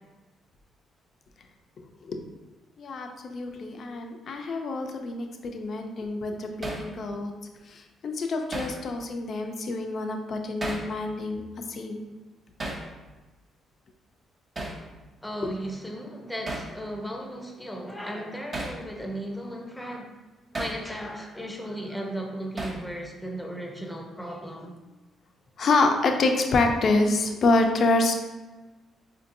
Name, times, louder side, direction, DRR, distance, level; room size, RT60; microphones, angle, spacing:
voice 1, 2.8-7.3 7.7-11.4 11.7-12.0 25.6-28.2, left 3 dB, 55° left, 4 dB, 0.5 m, -26 dB
Hammer, 6.6-6.9 8.5-8.8 10.6-10.9 12.6-12.9 14.6-14.8 16.5-16.7 18.5-18.8 20.5-20.8 22.6-22.9, right 2 dB, 30° right, 0.6 m, -33 dB
voice 2, 15.2-20.1 20.6-24.8, equal, 5° left, 1 dB, 0.6 m, -36 dB
4.4 x 2.7 x 2.6 m, 1.2 s
cardioid pair, 90°, 0 cm